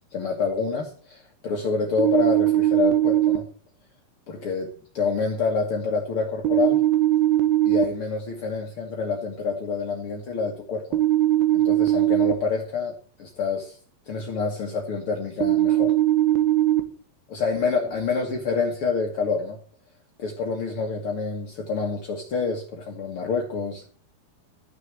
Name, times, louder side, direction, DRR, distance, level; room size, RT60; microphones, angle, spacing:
voice 1, 0.1-3.4 4.3-6.8 7.6-11.0 11.5-13.8 14.1-15.9 17.3-19.6 20.2-23.8, left 4 dB, 60° left, 1 dB, 1.5 m, -27 dB
sound 1, 2.0-3.4 6.5-7.8 10.9-12.3 15.4-16.8, right 14 dB, 70° right, 2.9 m, -20 dB
13.5 x 6.6 x 8.2 m, 0.43 s
omnidirectional pair, 5.0 m